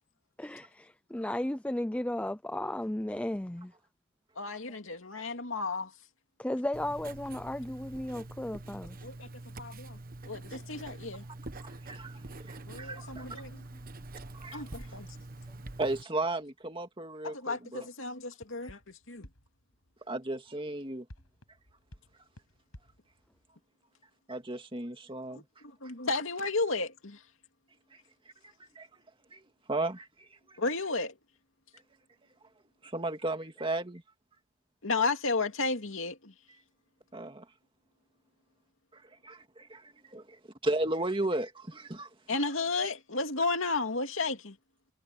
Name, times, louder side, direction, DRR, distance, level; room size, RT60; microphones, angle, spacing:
voice 1, 0.4-3.7 6.4-9.0, left 1 dB, 5° left, 0.4 m, -34 dB
voice 2, 4.4-5.9 9.0-9.3 9.6-10.0 10.2-11.2 12.7-13.6 14.5-15.1 17.2-18.8 19.1-19.3 25.3-27.2 30.6-31.1 34.8-36.3 42.3-44.5, left 3 dB, 65° left, 2.6 m, -33 dB
Writing, 6.7-16.0, right 2 dB, 40° right, 1.3 m, -45 dB
voice 3, 11.6-13.3 14.4-14.6 15.8-17.9 20.1-21.1 24.3-25.4 28.7-28.9 29.3-29.4 29.7-30.3 32.8-34.0 37.1-37.4 38.9-40.2 40.6-42.1, right 2 dB, 25° right, 2.4 m, -35 dB
Firework Display, 18.4-20.5 21.1-23.5, equal, 85° left, 6.7 m, -56 dB
head